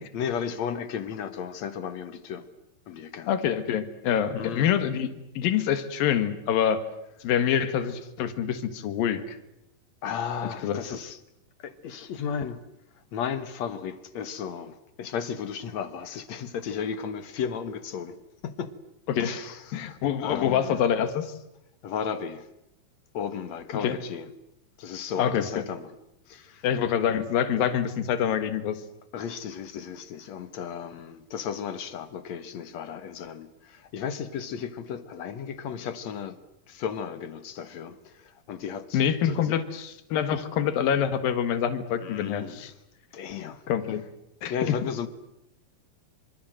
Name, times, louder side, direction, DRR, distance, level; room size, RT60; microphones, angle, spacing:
voice 1, 0.1-2.5 2.9-3.3 4.4-4.8 10.0-11.2 11.6-12.6 13.1-18.2 18.4-18.7 19.2-20.8 21.8-22.5 23.1-24.3 24.8-25.9 26.3-26.7 29.1-36.4 36.7-39.6 42.0-42.7 43.1-43.6 44.5-45.1, left 7 dB, 60° left, 2.4 m, -34 dB
voice 2, 3.3-5.1 5.3-6.8 7.2-9.4 10.6-10.8 19.1-19.4 19.7-21.3 23.8-24.0 25.2-25.6 26.6-28.8 38.9-42.7 43.7-44.0 44.4-44.8, left 9 dB, 85° left, 3.4 m, -26 dB
27.5 x 27.0 x 7.8 m
omnidirectional pair, 4.0 m